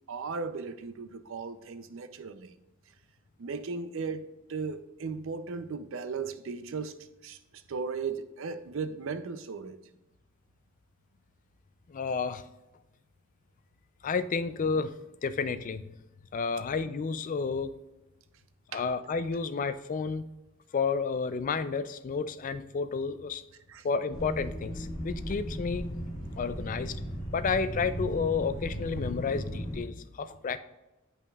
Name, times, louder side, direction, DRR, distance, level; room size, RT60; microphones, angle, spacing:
voice 1, 0.1-2.5 3.4-6.9 7.2-7.4 7.7-9.8 18.7-18.8 23.7-23.9, right 4 dB, 70° right, 0.5 m, -36 dB
voice 2, 11.9-12.4 14.0-14.9 15.2-15.8 16.3-17.7 18.7-20.3 20.7-23.4 23.8-25.9 26.3-27.0 27.3-30.6, left 5 dB, 40° left, 0.4 m, -31 dB
sound 1, 24.1-29.8, equal, 20° left, 2.1 m, -37 dB
8.9 x 5.6 x 2.3 m
head